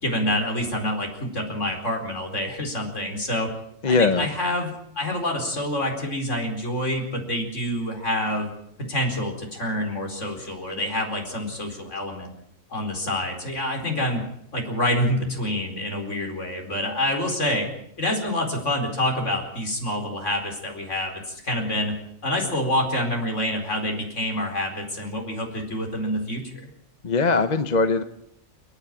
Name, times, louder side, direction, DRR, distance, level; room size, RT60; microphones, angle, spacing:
voice 1, 0.0-3.5 3.9-8.5 8.8-12.3 12.7-14.2 14.5-17.7 18.0-21.9 22.2-26.7, left 1 dB, 65° left, 2 dB, 4.8 m, -27 dB
voice 2, 3.8-4.3 27.0-28.0, left 4 dB, 35° left, 10 dB, 1.0 m, -20 dB
29.5 x 10.0 x 9.0 m, 0.73 s
omnidirectional pair, 1.4 m